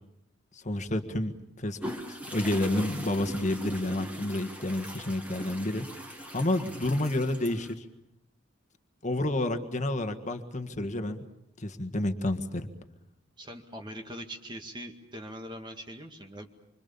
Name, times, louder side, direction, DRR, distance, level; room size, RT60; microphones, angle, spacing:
voice 1, 0.5-5.8 6.2-7.8 9.0-11.2 11.6-12.7, left 1 dB, 40° left, 7 dB, 1.7 m, -30 dB
sound 1, 1.8-7.7, equal, 10° right, 2.5 m, -41 dB
voice 2, 13.4-16.5, equal, 25° right, 3 dB, 2.0 m, -42 dB
26.5 x 25.5 x 7.1 m, 0.83 s
head